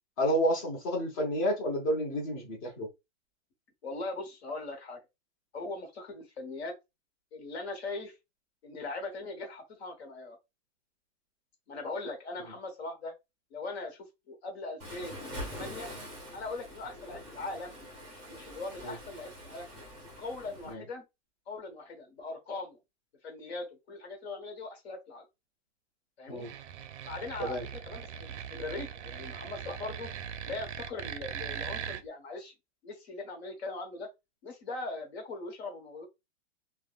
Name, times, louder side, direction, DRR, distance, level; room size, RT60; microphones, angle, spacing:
voice 1, 0.2-2.9 18.8-18.9 20.7-20.8 26.3-26.5 27.4-27.6, equal, 30° left, 0.9 m, -30 dB
voice 2, 3.8-5.0 5.5-6.7 7.3-8.1 8.6-10.4 11.7-13.1 13.5-15.9 16.3-17.8 18.0-19.7 20.2-21.0 21.5-22.8 23.2-25.3 26.2-26.5 27.0-30.1 30.4-32.5 32.8-34.1 34.4-36.1, left 3 dB, 55° left, 1.1 m, -40 dB
Waves surf, 14.8-20.7, equal, ahead, 0.7 m, -44 dB
sound 1, 26.4-32.0, right 8 dB, 65° right, 0.5 m, -40 dB
3.4 x 2.2 x 2.3 m
hypercardioid pair, 175°, 38 cm